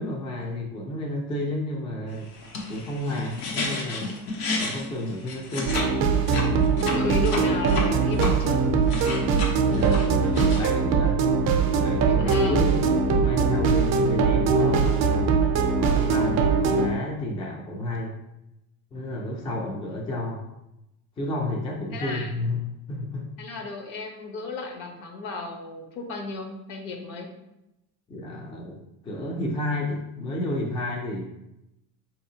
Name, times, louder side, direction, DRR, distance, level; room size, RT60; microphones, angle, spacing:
voice 1, 0.0-2.3 2.7-4.3 4.6-5.8 9.7-15.3 15.8-18.2 18.9-20.5 21.2-23.3 28.1-31.2, left 1 dB, 15° left, -1 dB, 0.3 m, -31 dB
sound 1, 2.3-5.9 6.2-8.3 8.7-10.6, left 3 dB, 85° left, 0.9 m, -31 dB
sound 2, 5.7-16.9, right 5 dB, 45° right, 0.5 m, -22 dB
voice 2, 6.9-8.6 12.2-12.6 21.9-22.4 23.4-27.3, left 3 dB, 60° left, 3 dB, 0.8 m, -34 dB
4.1 x 2.8 x 2.7 m, 0.89 s
cardioid pair, 135°, 40 cm